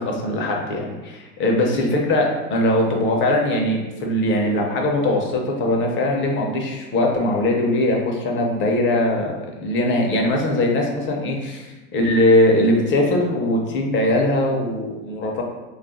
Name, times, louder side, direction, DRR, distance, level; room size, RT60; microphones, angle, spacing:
voice 1, 0.0-15.4, left 1 dB, 25° left, 0 dB, 0.5 m, -21 dB
2.4 x 2.3 x 3.8 m, 1.1 s
hypercardioid pair, 105°, 46 cm